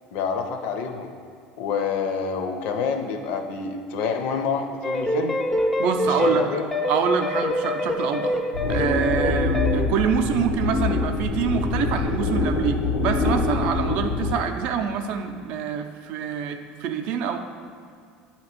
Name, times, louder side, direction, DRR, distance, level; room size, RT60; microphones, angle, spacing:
voice 1, 0.1-1.1 1.6-5.4 6.0-6.7, left 5 dB, 55° left, 6 dB, 0.6 m, -27 dB
sound 1, 4.8-9.9, left 1 dB, 10° left, 0.3 m, -25 dB
voice 2, 5.8-6.5 6.9-8.4 8.7-17.4, right 7 dB, 55° right, 6 dB, 0.5 m, -26 dB
sound 2, 8.5-14.4, left 3 dB, 85° left, 0.9 m, -25 dB
8.4 x 2.9 x 5.9 m, 2.3 s
cardioid pair, 175°, 3 cm